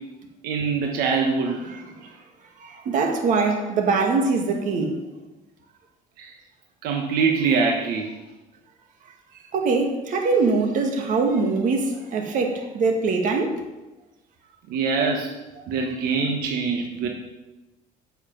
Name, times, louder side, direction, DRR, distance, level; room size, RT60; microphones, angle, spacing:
voice 1, 0.4-1.6 3.4-3.5 6.2-6.3 6.8-8.1 14.7-15.3 15.7-17.1, right 5 dB, 85° right, 1.3 m, -23 dB
voice 2, 2.6-5.0 9.5-13.6 15.6-15.7, right 4 dB, 55° right, 2.0 m, -23 dB
10.0 x 6.5 x 7.7 m
cardioid pair, 145°, 15 cm